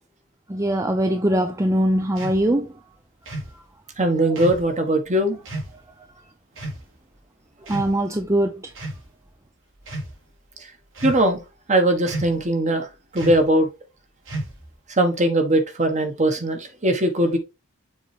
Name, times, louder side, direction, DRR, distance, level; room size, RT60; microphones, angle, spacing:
voice 1, 0.5-2.7 7.7-8.7, right 1 dB, 15° right, 0.5 m, -21 dB
sound 1, 2.2-2.4 3.2-3.5 4.4-4.7 5.4-5.7 6.6-6.8 7.6-8.2 8.7-9.0 9.8-10.1 10.9-11.4 12.0-12.4 13.2-13.5 14.2-14.7, right 1 dB, 65° right, 3.4 m, -32 dB
voice 2, 4.0-5.4 11.0-11.4 11.7-12.9 13.1-13.7 15.0-17.4, right 1 dB, 35° right, 1.4 m, -20 dB
7.1 x 4.1 x 3.4 m
head